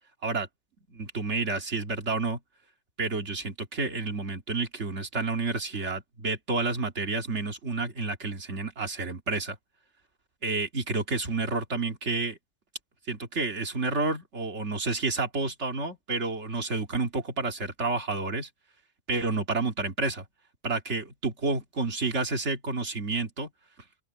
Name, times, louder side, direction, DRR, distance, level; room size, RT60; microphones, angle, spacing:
voice 1, 0.9-2.4 3.0-9.6 10.4-12.4 13.1-18.5 19.1-20.3 20.6-23.5, right 3 dB, 80° right, 2.5 m, -30 dB
open air
omnidirectional pair, 1.2 m